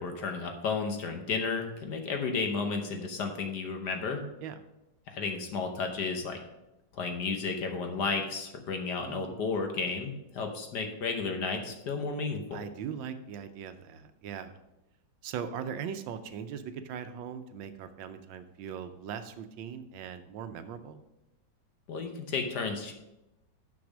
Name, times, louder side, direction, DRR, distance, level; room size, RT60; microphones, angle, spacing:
voice 1, 0.0-4.2 5.1-6.4 6.9-12.6 21.9-22.9, left 4 dB, 60° left, 4 dB, 1.5 m, -33 dB
voice 2, 9.0-9.5 12.5-14.6 15.2-21.0, right 7 dB, 75° right, 10 dB, 1.3 m, -40 dB
6.3 x 6.1 x 6.1 m, 0.94 s
omnidirectional pair, 2.2 m